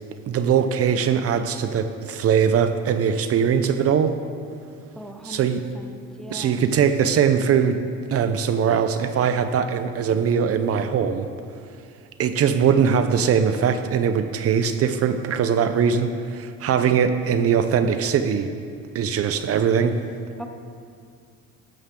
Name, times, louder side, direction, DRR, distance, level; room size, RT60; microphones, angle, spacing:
voice 1, 0.3-4.1 5.2-5.6 6.3-7.8 8.1-11.3 12.2-18.5 18.9-20.0, right 7 dB, 45° right, 9 dB, 0.7 m, -21 dB
voice 2, 5.0-5.5 5.7-6.6 20.4-20.5, equal, ahead, 4 dB, 0.7 m, -40 dB
13.0 x 12.0 x 3.8 m, 2.3 s
cardioid pair, 110°, 32 cm